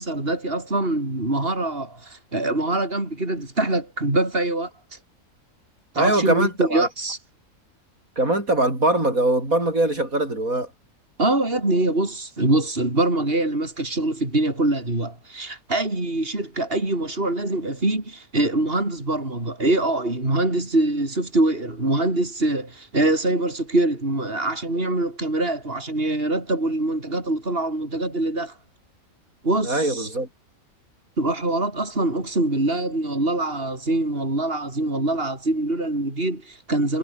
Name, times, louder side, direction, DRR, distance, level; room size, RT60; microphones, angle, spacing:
voice 1, 0.0-4.7 5.9-7.2 11.2-28.6 29.4-30.1 31.2-37.0, right 2 dB, 40° right, 5.6 m, -24 dB
voice 2, 6.0-6.9 8.2-10.7 29.6-30.3, right 2 dB, 85° right, 8.0 m, -22 dB
omnidirectional pair, 1.4 m